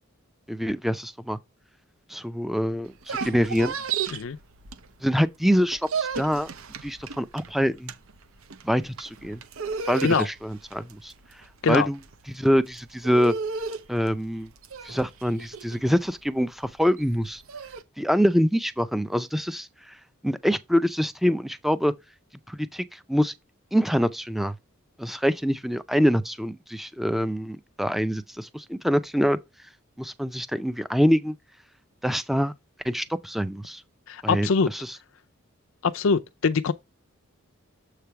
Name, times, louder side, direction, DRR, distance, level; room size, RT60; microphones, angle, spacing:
voice 1, 0.5-1.4 2.1-3.7 5.0-6.5 6.8-7.9 8.6-9.4 9.9-11.1 11.7-12.0 12.3-13.3 13.9-14.5 14.8-17.4 18.0-19.7 20.2-21.9 22.5-23.3 23.7-24.5 25.0-29.4 30.0-31.4 32.0-32.5 32.8-33.8 34.2-34.8, equal, ahead, 0.4 m, -25 dB
sound 1, 2.9-5.2 5.5-17.8, right 5 dB, 75° right, 0.8 m, -34 dB
voice 2, 34.1-34.7 35.8-36.7, left 5 dB, 65° left, 0.5 m, -23 dB
7.5 x 3.3 x 5.7 m
head